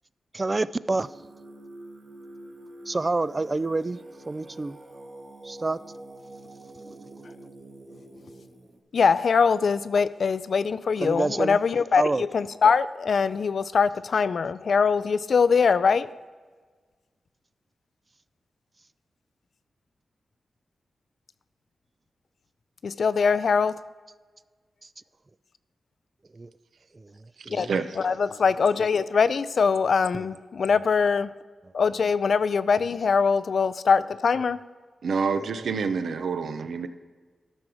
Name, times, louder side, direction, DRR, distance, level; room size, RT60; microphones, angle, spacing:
voice 1, 0.3-1.1 2.9-4.0 4.3-4.7 5.4-5.8 6.9-7.0 11.0-11.6 12.0-12.2 26.4-26.5, right 3 dB, 30° right, 0.3 m, -27 dB
Singing, 0.9-8.8, right 1 dB, 45° right, 1.5 m, -46 dB
voice 2, 8.9-16.1 22.8-23.7 27.6-27.7 28.0-31.3 31.7-34.6, left 5 dB, 65° left, 0.4 m, -22 dB
voice 3, 35.0-36.9, right 5 dB, 85° right, 0.6 m, -27 dB
13.5 x 6.1 x 4.9 m
wide cardioid pair, 90°, 0 cm